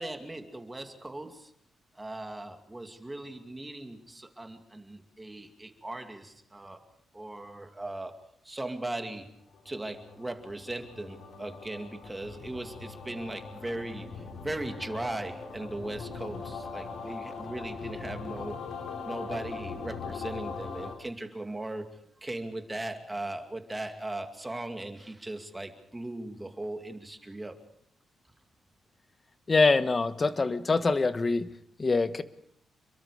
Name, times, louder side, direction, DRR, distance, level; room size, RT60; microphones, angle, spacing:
voice 1, 0.0-1.5 1.9-6.9 7.1-8.2 8.4-9.3 9.6-18.6 19.0-21.9 22.2-27.6, right 2 dB, 15° right, 6 dB, 2.4 m, -38 dB
sound 1, 9.4-20.9, left 5 dB, 60° left, 4.4 m, -41 dB
voice 2, 29.5-31.5 31.8-32.2, left 3 dB, 25° left, 12 dB, 1.3 m, -24 dB
29.0 x 22.5 x 5.0 m, 0.68 s
cardioid pair, 135°, 0 cm